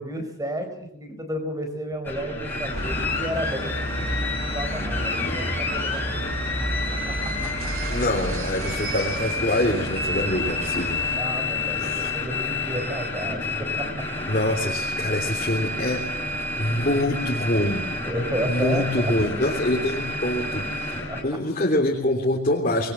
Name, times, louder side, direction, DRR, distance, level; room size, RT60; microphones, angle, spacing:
voice 1, 0.0-6.3 7.1-7.5 11.2-14.1 18.0-19.1 21.1-21.2, equal, 15° right, 7 dB, 4.5 m, -32 dB
sound 1, 2.0-21.2, left 2 dB, 10° left, 4.8 m, -29 dB
sound 2, 2.7-11.2, right 3 dB, 70° right, 1.3 m, -35 dB
voice 2, 7.9-11.0 11.6-12.1 14.2-16.0 16.6-17.9 18.5-22.9, left 1 dB, 35° left, -2 dB, 3.3 m, -25 dB
25.0 x 22.5 x 7.7 m, 0.77 s
head